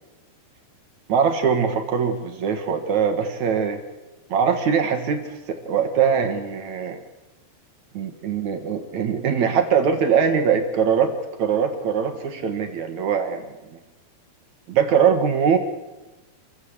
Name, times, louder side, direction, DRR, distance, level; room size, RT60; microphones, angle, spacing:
voice 1, 1.1-3.8 4.3-7.0 7.9-11.1 11.4-13.5 14.7-15.6, right 7 dB, 55° right, 6 dB, 2.3 m, -22 dB
26.5 x 15.0 x 8.1 m, 1.1 s
omnidirectional pair, 4.8 m